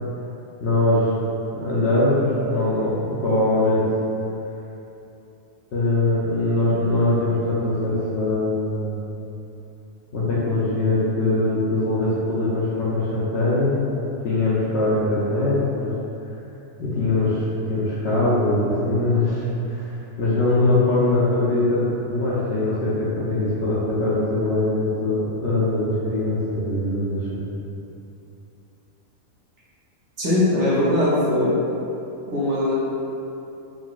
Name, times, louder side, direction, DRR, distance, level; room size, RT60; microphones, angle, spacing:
voice 1, 0.6-1.2 1.5-3.9 5.7-9.0 10.1-13.8 14.2-15.9 16.8-27.5, left 2 dB, 65° left, -8 dB, 0.7 m, -22 dB
voice 2, 30.2-31.5 32.2-32.7, left 1 dB, 60° right, -8 dB, 0.9 m, -20 dB
3.8 x 2.6 x 2.3 m, 2.9 s
omnidirectional pair, 1.5 m